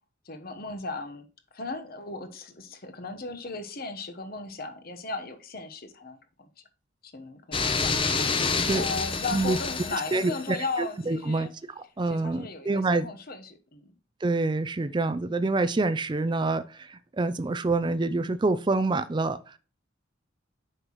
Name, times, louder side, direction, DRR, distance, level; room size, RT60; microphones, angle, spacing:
voice 1, 0.2-1.2 1.5-6.5 7.0-11.5 12.1-13.9, left 3 dB, 50° left, 1.1 m, -36 dB
sound 1, 7.5-10.7, left 4 dB, 25° left, 0.7 m, -28 dB
voice 2, 8.6-8.9 9.3-9.6 10.1-11.5 11.8-13.1 14.2-19.6, right 3 dB, 25° right, 0.4 m, -27 dB
7.9 x 5.7 x 3.0 m
head